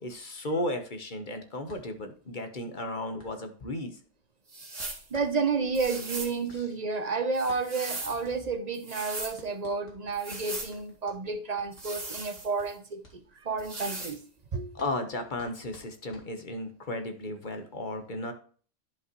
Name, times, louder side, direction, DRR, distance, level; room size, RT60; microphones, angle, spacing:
voice 1, 0.0-4.0 6.5-6.6 14.7-18.3, left 1 dB, 40° left, 1.2 m, -34 dB
sound 1, 1.7-16.8, left 1 dB, 80° left, 2.6 m, -57 dB
sound 2, 4.5-5.1 5.7-6.4 7.3-8.2 8.7-9.4 10.1-10.7 11.7-12.7 13.6-14.2, right 2 dB, 65° right, 2.5 m, -38 dB
voice 2, 5.1-13.0 13.4-14.2 14.5-14.8, right 4 dB, 40° right, 0.7 m, -31 dB
11.0 x 5.4 x 3.0 m
omnidirectional pair, 1.2 m